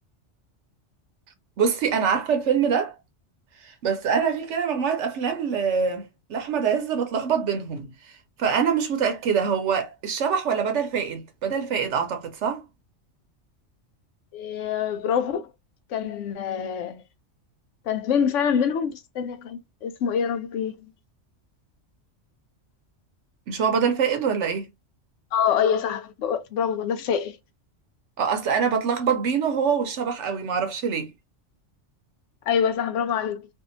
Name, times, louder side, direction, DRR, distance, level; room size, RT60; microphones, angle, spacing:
voice 1, 1.6-3.0 3.6-7.9 8.4-12.6 23.5-24.7 28.2-31.1, right 6 dB, 80° right, 0.9 m, -24 dB
voice 2, 14.3-15.5 15.9-17.0 17.8-20.9 25.3-27.4 32.5-33.5, left 7 dB, 85° left, 0.9 m, -25 dB
2.6 x 2.4 x 2.5 m
omnidirectional pair, 1.2 m